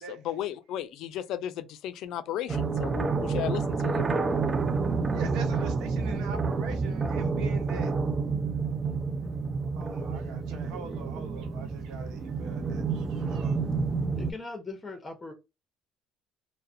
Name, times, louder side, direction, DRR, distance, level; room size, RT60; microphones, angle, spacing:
voice 1, 0.1-4.0, left 11 dB, 70° left, 0.3 m, -35 dB
sound 1, 2.5-14.3, right 4 dB, 30° right, 0.4 m, -29 dB
voice 2, 5.1-7.9 9.8-13.6, right 5 dB, 70° right, 0.8 m, -43 dB
voice 3, 14.2-15.3, left 3 dB, 20° left, 0.7 m, -39 dB
2.4 x 2.0 x 2.6 m
supercardioid pair, 80°, 0 cm